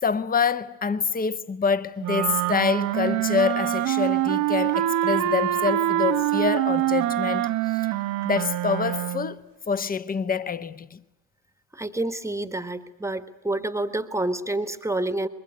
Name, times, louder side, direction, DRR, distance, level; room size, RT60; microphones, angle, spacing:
voice 1, 0.0-7.9 8.2-9.4 9.7-11.0, left 6 dB, 20° left, 1.1 m, -26 dB
sound 1, 2.0-9.4, right 14 dB, 45° right, 1.1 m, -25 dB
voice 2, 11.7-15.3, right 2 dB, 5° right, 1.4 m, -28 dB
25.0 x 22.5 x 9.4 m
figure-of-eight pair, 55°, 42 cm